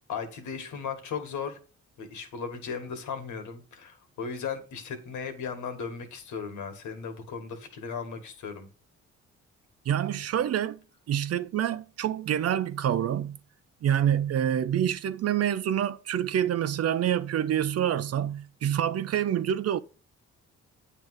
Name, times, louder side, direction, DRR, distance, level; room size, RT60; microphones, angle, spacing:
voice 1, 0.1-1.6 2.0-8.7, left 6 dB, 80° left, 1.8 m, -36 dB
voice 2, 9.9-10.8 11.1-13.4 13.8-19.8, right 10 dB, 55° right, 0.6 m, -27 dB
8.9 x 3.4 x 6.4 m
cardioid pair, 90°, 30 cm